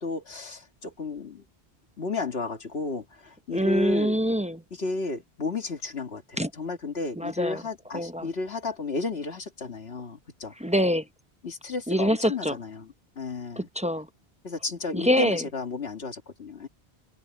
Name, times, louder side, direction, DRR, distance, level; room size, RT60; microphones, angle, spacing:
voice 1, 0.0-1.4 2.0-4.2 4.7-10.5 11.4-13.7 14.4-16.7, left 3 dB, 80° left, 2.2 m, -33 dB
voice 2, 3.5-4.6 6.4-6.5 7.2-7.6 7.9-8.3 10.6-11.0 11.9-12.6 13.6-14.1 14.9-15.4, equal, 10° right, 0.6 m, -25 dB
omnidirectional pair, 1.1 m